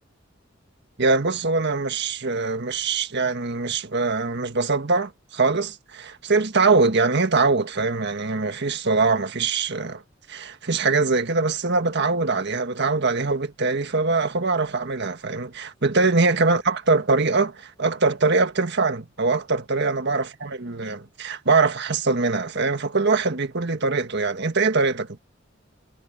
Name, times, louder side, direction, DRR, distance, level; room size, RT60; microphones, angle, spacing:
voice 1, 1.0-10.0 10.3-25.2, right 3 dB, 60° right, 1.6 m, -23 dB
head